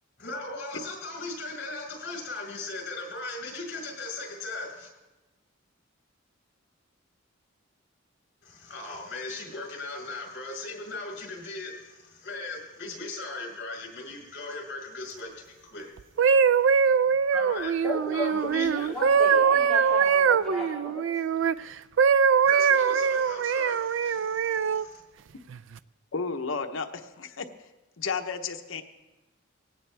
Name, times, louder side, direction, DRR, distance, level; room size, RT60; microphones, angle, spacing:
voice 1, 0.2-4.9 8.4-15.9 17.3-17.8 18.1-18.9 22.4-25.0, left 3 dB, 55° left, 0 dB, 5.1 m, -38 dB
sound 1, 16.0-21.5 22.0-24.8 25.5-25.8, right 6 dB, 65° right, 0.4 m, -22 dB
voice 2, 17.8-21.0 21.3-21.4, left 1 dB, 5° left, -8 dB, 2.7 m, -34 dB
voice 3, 26.1-27.7 28.0-28.8, left 5 dB, 70° left, 7 dB, 0.9 m, -33 dB
19.0 x 17.0 x 3.4 m, 1.1 s
head